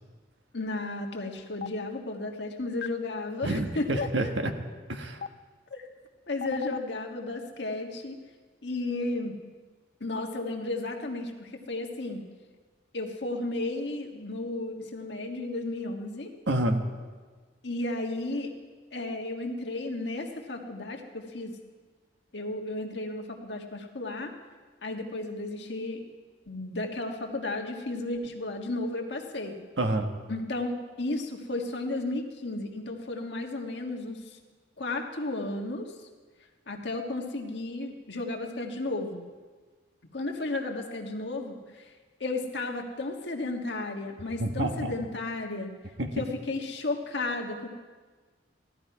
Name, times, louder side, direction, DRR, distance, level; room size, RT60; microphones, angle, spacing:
voice 1, 0.5-4.3 5.7-5.9 6.3-8.2 8.6-9.4 10.0-12.2 12.9-16.3 17.6-18.5 18.9-21.5 22.3-24.3 24.8-26.0 26.5-29.6 30.3-34.4 34.8-35.9 36.7-39.2 40.1-41.9 42.2-45.7 46.2-47.7, left 2 dB, 70° left, 2 dB, 1.6 m, -33 dB
Stream, 1.6-1.7 2.8-2.9 4.0-4.1 5.2-5.3 6.4-6.8, left 7 dB, 50° left, 0.3 m, -33 dB
voice 2, 3.4-4.5 4.9-5.2 16.5-16.8 29.8-30.1 44.4-44.9 46.0-46.2, right 1 dB, 80° right, 5 dB, 1.4 m, -28 dB
16.5 x 13.0 x 4.8 m, 1.4 s
head